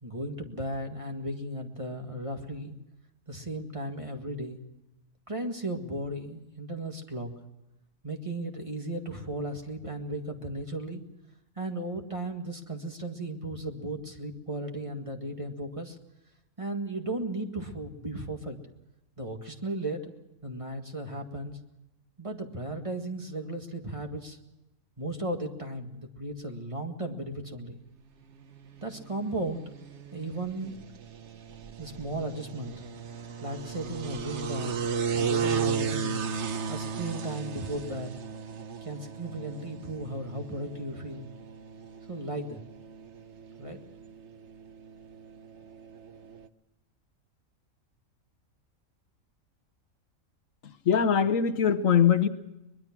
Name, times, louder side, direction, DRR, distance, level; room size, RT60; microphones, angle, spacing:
voice 1, 0.0-2.8 3.3-4.6 5.3-7.3 8.0-11.0 11.6-16.0 16.6-18.6 19.2-20.1 20.4-21.6 22.2-24.4 25.0-27.8 28.8-29.8 30.1-30.7 31.8-32.7 33.4-34.8 35.1-36.2 36.7-38.1 38.8-41.3 42.1-42.6 43.6-43.8, right 1 dB, 25° right, 1.9 m, -35 dB
sound 1, 28.4-46.5, right 6 dB, 60° right, 1.2 m, -36 dB
voice 2, 50.6-52.3, left 7 dB, 70° left, 1.3 m, -22 dB
23.5 x 20.5 x 6.0 m
omnidirectional pair, 1.4 m